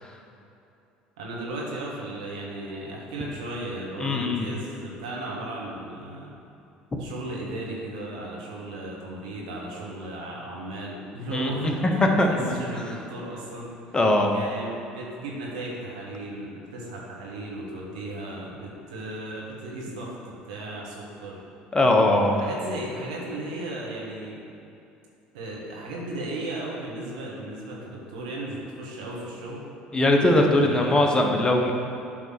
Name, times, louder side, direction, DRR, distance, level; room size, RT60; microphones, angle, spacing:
voice 1, 1.2-6.3 7.0-13.7 14.3-20.1 20.5-21.4 22.2-24.4 25.3-29.6 30.6-31.2, right 1 dB, 80° right, -3 dB, 1.5 m, -35 dB
voice 2, 4.0-4.5 11.3-12.8 13.9-14.3 21.7-22.4 29.9-31.7, left 1 dB, 20° left, 2 dB, 1.0 m, -21 dB
8.8 x 3.5 x 6.0 m, 2.7 s
hypercardioid pair, 70°, 4 cm